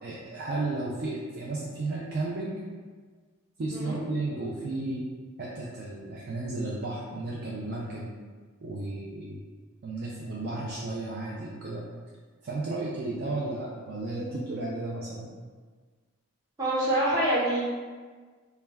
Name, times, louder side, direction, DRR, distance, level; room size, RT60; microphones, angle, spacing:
voice 1, 0.0-2.6 3.6-5.0 5.4-8.1 8.6-9.5 9.8-11.8 12.4-15.3, right 2 dB, 45° right, -5 dB, 0.3 m, -33 dB
voice 2, 16.6-17.6, right 1 dB, 15° right, -9 dB, 0.7 m, -25 dB
2.2 x 2.2 x 3.3 m, 1.5 s
head